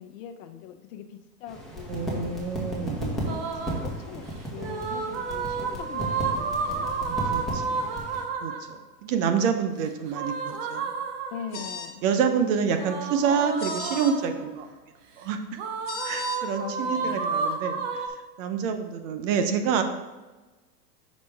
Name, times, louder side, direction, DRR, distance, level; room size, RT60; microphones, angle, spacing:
voice 1, 0.0-2.3 3.1-7.2 11.3-12.0 16.6-17.3, left 9 dB, 55° left, 7 dB, 0.7 m, -42 dB
sound 1, 1.5-8.2, equal, ahead, 1.5 m, -34 dB
voice 2, 1.9-3.4 7.1-7.9 8.4-10.9 12.0-14.7 15.2-15.4 16.0-18.1 18.4-19.8, right 6 dB, 50° right, 7 dB, 0.8 m, -27 dB
sound 2, 3.3-3.9 4.6-8.7 10.1-11.6 12.8-14.5 15.6-18.1, right 5 dB, 20° right, 0.3 m, -31 dB
sound 3, 11.5-12.0 13.6-14.1 15.9-16.4, left 5 dB, 85° left, 1.2 m, -36 dB
6.4 x 5.2 x 3.4 m, 1.2 s
hypercardioid pair, 115°, 49 cm